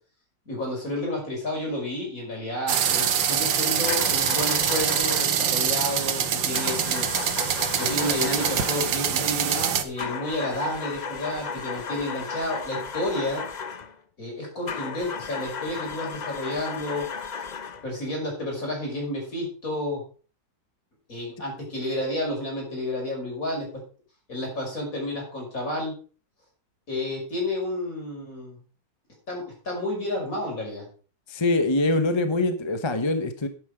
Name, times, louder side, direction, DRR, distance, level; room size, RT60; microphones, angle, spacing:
voice 1, 0.5-7.1 7.8-13.4 14.2-17.1 17.8-20.0 21.1-23.7 24.3-25.9 26.9-28.6 29.3-30.9, left 1 dB, 45° left, -1 dB, 6.2 m, -31 dB
sound 1, 2.7-9.8, right 8 dB, 85° right, 1.9 m, -24 dB
sound 2, 3.9-5.4 6.5-9.0 10.0-13.9 14.7-17.9, left 5 dB, 90° left, 0.3 m, -34 dB
voice 2, 31.3-33.5, left 2 dB, 25° left, 9 dB, 0.7 m, -24 dB
10.5 x 9.4 x 4.9 m, 0.38 s
omnidirectional pair, 2.0 m